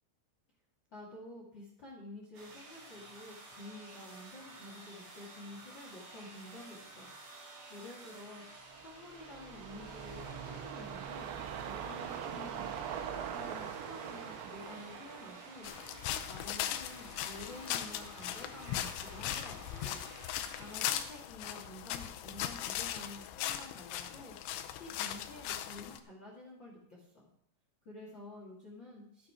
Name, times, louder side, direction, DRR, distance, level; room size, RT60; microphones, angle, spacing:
voice 1, 0.9-8.4 8.8-15.7 16.1-20.0 20.5-27.3 27.8-29.3, left 2 dB, 55° left, -3 dB, 1.3 m, -50 dB
sound 1, 2.3-21.0, right 3 dB, 50° right, 4.5 m, -52 dB
sound 2, 8.8-17.3 17.6-17.7, right 8 dB, 85° right, 3.6 m, -43 dB
sound 3, 15.6-26.0, left 11 dB, 80° left, 3.1 m, -39 dB
12.5 x 8.9 x 4.8 m, 0.68 s
omnidirectional pair, 6.0 m